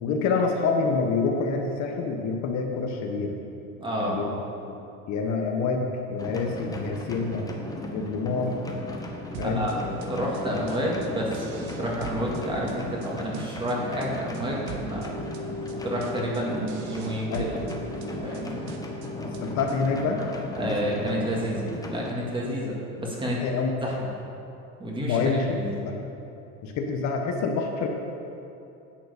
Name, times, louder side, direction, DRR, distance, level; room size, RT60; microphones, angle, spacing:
voice 1, 0.0-3.4 4.0-4.3 4.7-4.8 5.1-7.5 7.9-8.6 9.4-9.7 10.5-10.6 17.3-17.5 19.4-20.3 20.6-21.0 23.4-23.7 25.0-26.1 26.6-27.9, left 4 dB, 50° left, 2 dB, 1.2 m, -27 dB
voice 2, 3.8-4.2 9.4-9.7 10.0-15.2 15.8-17.5 18.2-18.5 20.6-23.4 23.8-24.1 24.8-25.2 25.6-25.8, equal, 15° right, -3 dB, 2.0 m, -30 dB
sound 1, 6.2-22.1, left 1 dB, 10° left, 1.0 m, -37 dB
sound 2, 9.3-20.0, right 1 dB, 60° right, 1.4 m, -40 dB
10.5 x 7.8 x 6.8 m, 2.7 s
cardioid pair, 150°, 36 cm